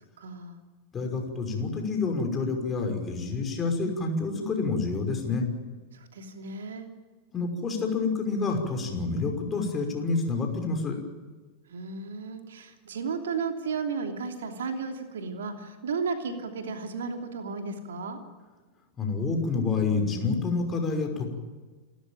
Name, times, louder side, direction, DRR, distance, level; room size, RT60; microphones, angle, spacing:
voice 1, 0.2-0.6 5.9-6.9 11.7-18.2, right 5 dB, 65° right, 5 dB, 2.9 m, -34 dB
voice 2, 0.9-5.5 7.3-11.0 19.0-21.3, left 4 dB, 20° left, 3 dB, 5.8 m, -28 dB
29.0 x 13.5 x 9.0 m, 1.3 s
figure-of-eight pair, 90°, 0 cm